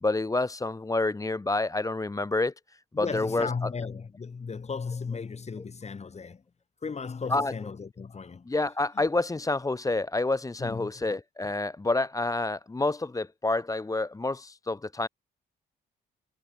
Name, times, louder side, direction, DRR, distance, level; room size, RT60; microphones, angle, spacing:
voice 1, 0.0-2.5 3.0-3.7 7.3-7.5 8.5-15.1, left 2 dB, 15° left, 1.2 m, -28 dB
voice 2, 2.9-6.4 6.8-8.5 8.9-9.1 10.6-11.0, left 5 dB, 35° left, 2.8 m, -36 dB
cardioid pair, 90°, 20 cm